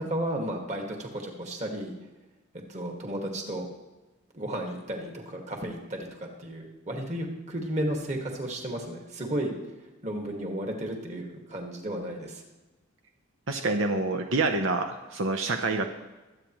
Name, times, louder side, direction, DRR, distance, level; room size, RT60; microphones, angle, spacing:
voice 1, 0.0-1.9 2.7-3.7 4.3-9.5 10.0-12.4, right 1 dB, 35° right, 2 dB, 1.9 m, -33 dB
voice 2, 13.5-15.9, right 3 dB, 75° right, 5 dB, 0.8 m, -27 dB
23.0 x 8.7 x 3.1 m, 1.1 s
head